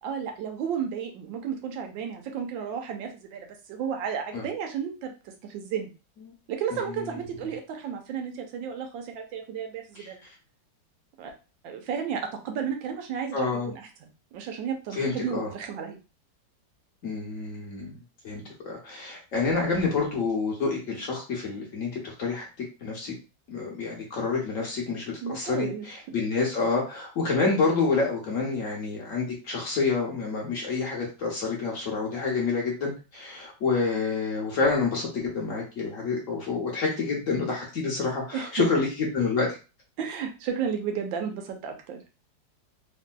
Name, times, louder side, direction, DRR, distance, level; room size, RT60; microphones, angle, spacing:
voice 1, 0.0-5.1 5.4-5.9 6.5-10.2 11.2-11.3 11.6-16.0 25.2-25.9 38.3-38.7 40.0-42.0, right 7 dB, 90° right, 4 dB, 1.4 m, -33 dB
voice 2, 13.3-13.7 14.9-15.5 17.0-17.9 18.2-22.5 22.8-23.1 23.5-39.6, left 4 dB, 55° left, -1 dB, 1.0 m, -28 dB
3.4 x 2.6 x 2.2 m, 0.31 s
omnidirectional pair, 2.0 m